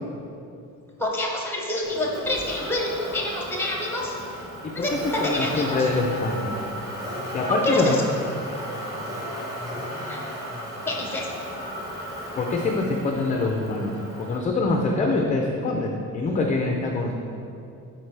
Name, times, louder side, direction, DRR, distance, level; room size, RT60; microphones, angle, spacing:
voice 1, 1.0-4.1 4.7-5.9 7.5-8.0 10.1-10.2 10.8-11.3, left 1 dB, 5° left, -1 dB, 0.8 m, -27 dB
Motor vehicle (road), 1.8-14.4, equal, 10° right, 1.2 m, -35 dB
voice 2, 4.6-6.5 7.3-8.0 12.3-13.9 14.2-17.1, left 3 dB, 25° left, 1 dB, 0.4 m, -24 dB
11.5 x 4.4 x 3.3 m, 2.6 s
cardioid pair, 180°, 34 cm